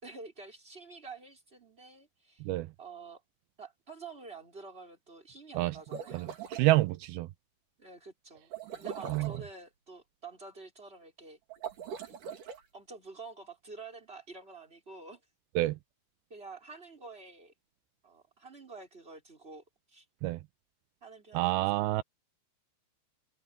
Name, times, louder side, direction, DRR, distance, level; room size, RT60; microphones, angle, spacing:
voice 1, 0.0-2.4 2.8-3.2 3.6-6.4 7.8-11.4 11.9-12.0 12.7-15.2 16.3-17.5 18.0-19.6 19.9-20.0 21.0-22.0, right 4 dB, 15° right, 5.1 m, -48 dB
sound 1, 5.7-6.7 8.5-9.4 11.5-12.6, right 8 dB, 55° right, 3.9 m, -41 dB
voice 2, 6.1-7.3 9.1-9.3 15.6-15.8 20.2-20.4 21.3-22.0, right 18 dB, 85° right, 2.2 m, -28 dB
omnidirectional pair, 4.9 m